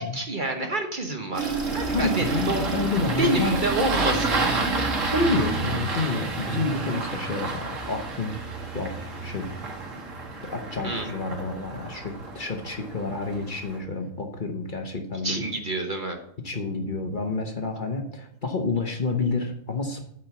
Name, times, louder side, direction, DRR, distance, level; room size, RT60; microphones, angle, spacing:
voice 1, 0.0-2.6 3.2-4.6 10.8-11.1 15.2-16.2, right 1 dB, 40° right, 4 dB, 1.1 m, -28 dB
Engine starting, 1.3-13.8, right 3 dB, 70° right, 1.8 m, -29 dB
voice 2, 1.9-3.6 5.0-8.4 8.7-9.5 10.5-15.4 16.4-20.1, left 3 dB, 40° left, 4 dB, 1.1 m, -29 dB
8.9 x 4.5 x 7.0 m, 0.69 s
omnidirectional pair, 1.4 m